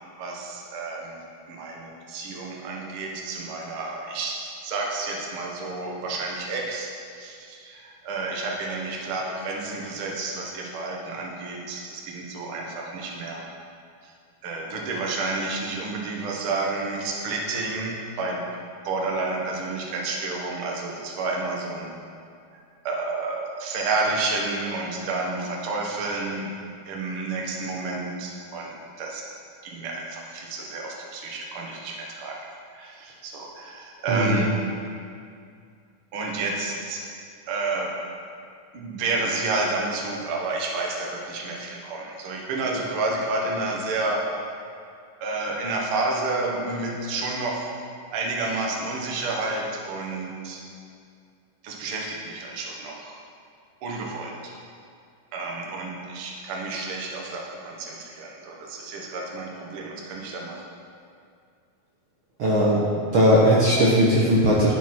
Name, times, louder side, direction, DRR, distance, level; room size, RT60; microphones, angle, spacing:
voice 1, 0.2-1.1 1.5-13.4 14.0-14.1 14.4-18.4 18.8-21.9 22.8-26.5 26.9-29.2 29.6-32.5 32.7-34.5 36.1-37.0 37.5-37.9 38.7-44.4 45.2-47.6 48.1-50.6 51.6-53.2 53.8-54.5 55.3-60.6, right 3 dB, 55° right, -2 dB, 1.5 m, -30 dB
voice 2, 34.1-34.4 62.4-62.8 63.1-64.7, equal, 80° right, -6 dB, 1.1 m, -18 dB
12.0 x 7.0 x 4.3 m, 2.3 s
omnidirectional pair, 4.0 m